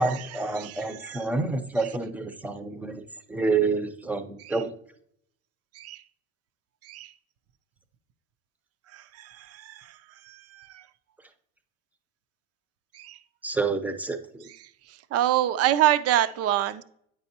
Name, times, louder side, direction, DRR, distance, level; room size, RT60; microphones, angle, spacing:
voice 1, 0.0-3.0 3.3-4.7 13.4-14.4, right 3 dB, 5° right, 0.7 m, -28 dB
voice 2, 0.6-1.2 4.4-4.6 5.8-6.0 6.9-7.1 8.9-9.9 10.3-10.8 12.9-13.2 15.1-16.8, right 12 dB, 40° right, 0.6 m, -26 dB
8.9 x 5.5 x 2.9 m
hypercardioid pair, 90°, 38 cm